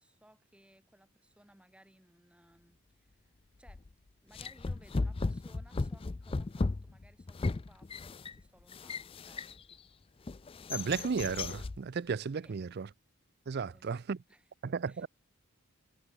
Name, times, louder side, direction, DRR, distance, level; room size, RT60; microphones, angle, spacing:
voice 1, 0.0-3.8 4.2-9.9 12.4-12.6 13.5-14.0 14.3-14.5 14.8-15.1, right 1 dB, 5° right, 2.9 m, -63 dB
Sash Window Open and Close, 3.7-3.9 4.3-9.8 10.3-11.8, left 3 dB, 25° left, 0.4 m, -36 dB
voice 2, 10.7-12.9 13.5-14.2 14.6-15.1, right 5 dB, 50° right, 0.4 m, -34 dB
head